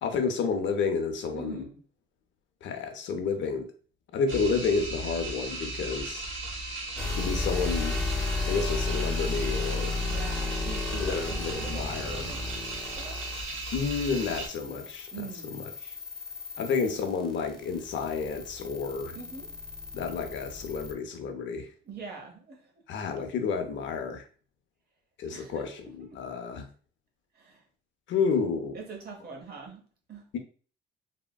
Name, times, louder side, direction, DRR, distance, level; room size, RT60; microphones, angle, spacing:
voice 1, 0.0-1.6 2.6-3.7 4.1-6.3 7.2-8.0 8.5-10.0 10.9-12.3 13.7-15.9 16.6-19.2 19.9-21.7 22.9-24.2 25.2-26.7 28.1-28.8 30.3-30.4, left 5 dB, 70° left, 0.6 m, -30 dB
voice 2, 1.3-1.8 5.8-6.2 10.0-13.3 15.1-15.6 16.7-16.8 19.0-19.6 21.8-22.8 25.3-26.2 27.3-27.7 28.7-30.3, right 5 dB, 55° right, 0.9 m, -44 dB
sound 1, 4.3-14.5, right 2 dB, 85° right, 0.9 m, -36 dB
sound 2, 7.0-20.9, left 3 dB, 5° left, 0.7 m, -34 dB
3.5 x 2.1 x 2.3 m
cardioid pair, 90°, 20 cm